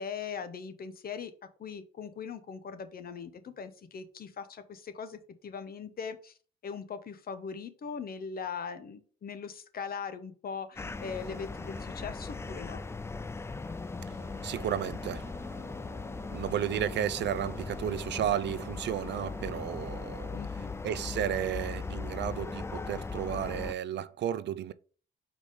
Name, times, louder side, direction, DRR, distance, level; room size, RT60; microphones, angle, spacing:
voice 1, 0.0-1.3 1.6-6.3 6.6-12.8 20.3-20.8, left 6 dB, 50° left, 1.0 m, -40 dB
sound 1, 10.8-23.7, left 4 dB, 15° left, 0.3 m, -39 dB
Bus, 14.1-19.9, right 6 dB, 45° right, 1.0 m, -54 dB
voice 2, 14.4-15.3 16.3-20.4 20.8-24.7, right 10 dB, 60° right, 0.5 m, -33 dB
5.0 x 3.7 x 5.0 m
cardioid pair, 90°, 20 cm